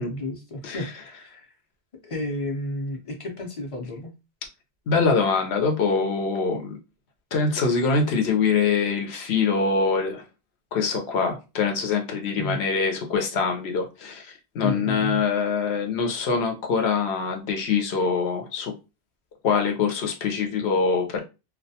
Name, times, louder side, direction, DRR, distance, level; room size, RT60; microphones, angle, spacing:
voice 1, 0.0-1.5 2.0-4.1 12.4-12.6 14.6-15.2, left 1 dB, 40° left, 0.6 m, -32 dB
voice 2, 4.9-6.8 7.3-10.2 10.7-18.7 19.4-21.2, left 5 dB, 85° left, 0.9 m, -24 dB
2.3 x 2.1 x 2.7 m
omnidirectional pair, 1.1 m